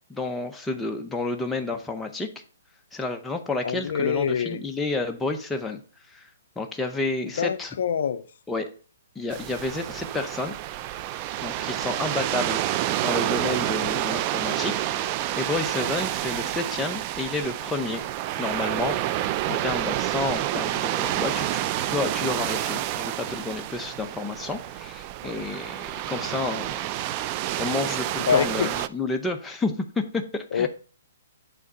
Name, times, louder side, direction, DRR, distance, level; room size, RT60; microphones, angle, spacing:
voice 1, 0.1-2.3 2.9-5.8 6.1-6.3 6.6-7.7 8.5-8.7 9.2-10.5 11.4-14.7 15.4-18.0 18.4-26.8 27.6-30.7, left 3 dB, 5° left, 0.7 m, -30 dB
voice 2, 3.6-4.6 7.4-8.2 28.3-28.7 30.5-30.7, left 7 dB, 60° left, 0.5 m, -25 dB
sound 1, 9.3-28.9, right 13 dB, 30° right, 0.3 m, -29 dB
8.4 x 3.6 x 5.3 m
hypercardioid pair, 155°, 0 cm